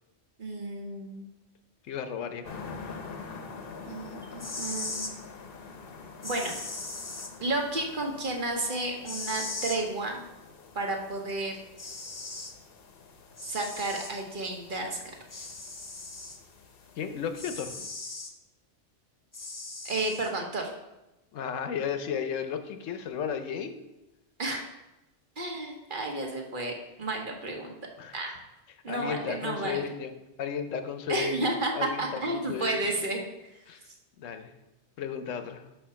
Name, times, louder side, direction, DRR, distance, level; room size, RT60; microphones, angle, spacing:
voice 1, 0.4-1.3 3.9-5.1 6.2-6.6 7.4-10.3 10.7-11.6 13.4-15.0 19.8-20.7 24.4-24.6 25.4-27.7 28.1-28.3 28.8-29.8 31.1-33.6 33.9-34.0, right 2 dB, 45° right, 1 dB, 1.1 m, -32 dB
voice 2, 1.8-2.5 17.0-17.7 21.3-23.9 28.0-28.2 28.9-30.1 30.4-31.5 31.8-32.8 33.7-33.8 34.2-34.5 35.0-35.7, left 7 dB, 80° left, 8 dB, 1.0 m, -34 dB
sound 1, 2.4-17.9, left 4 dB, 55° left, 0.9 m, -47 dB
sound 2, 4.4-5.1 6.2-7.3 9.1-9.8 11.3-11.4 11.8-12.5 13.4-14.1 15.3-16.4 17.3-18.3 19.3-20.3, left 3 dB, 30° left, 0.4 m, -38 dB
5.7 x 4.5 x 5.6 m, 0.98 s
omnidirectional pair, 1.3 m